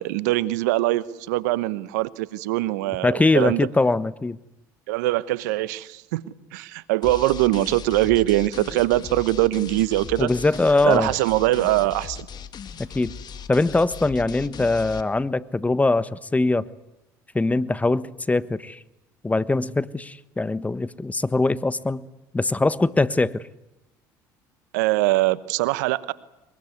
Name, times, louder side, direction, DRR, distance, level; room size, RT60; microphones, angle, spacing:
voice 1, 0.0-3.7 4.9-6.2 6.5-10.3 10.8-12.3 24.7-26.1, right 17 dB, 80° right, 1.0 m, -22 dB
voice 2, 3.0-4.4 10.2-11.1 12.8-13.1 13.5-16.7 17.3-18.8 19.2-22.1 22.3-23.4, left 2 dB, 15° left, 1.2 m, -22 dB
sound 1, 7.0-15.0, left 7 dB, 50° left, 1.9 m, -38 dB
23.0 x 22.5 x 9.6 m
hypercardioid pair, 70°, 9 cm